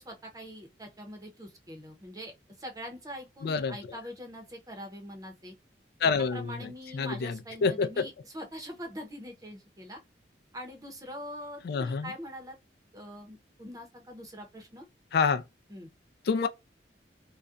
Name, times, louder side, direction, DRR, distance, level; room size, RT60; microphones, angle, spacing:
voice 1, 0.0-5.5 6.3-10.0 10.5-12.6 12.9-14.9 15.7-15.9, equal, 20° right, 0.6 m, -43 dB
voice 2, 3.4-3.8 6.0-8.0 11.6-12.1 15.1-15.4 16.3-16.5, left 5 dB, 60° left, 0.3 m, -28 dB
2.4 x 2.1 x 2.5 m
head